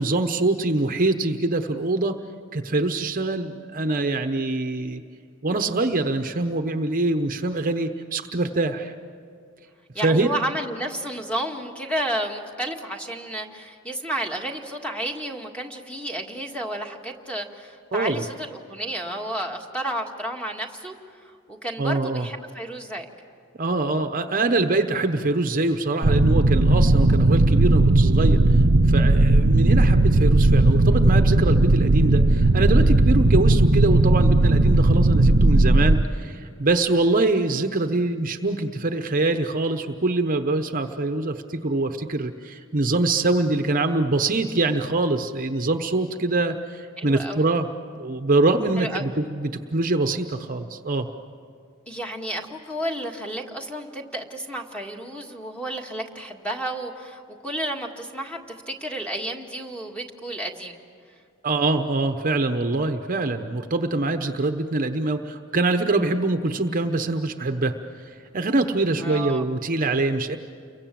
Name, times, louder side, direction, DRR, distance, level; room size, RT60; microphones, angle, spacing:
voice 1, 0.0-2.2 2.5-5.0 5.4-8.9 10.0-10.3 17.9-18.2 21.8-22.3 23.6-28.6 28.9-47.7 47.9-51.1 61.4-67.8 68.3-70.4, right 2 dB, 40° right, 7 dB, 1.0 m, -24 dB
voice 2, 9.9-21.0 21.2-23.1 47.0-47.5 48.8-49.0 51.9-60.8 69.0-69.4, right 1 dB, 5° left, 2 dB, 1.9 m, -31 dB
sound 1, 26.0-36.0, right 2 dB, 80° right, 0.9 m, -17 dB
29.5 x 23.5 x 7.6 m, 2.3 s
head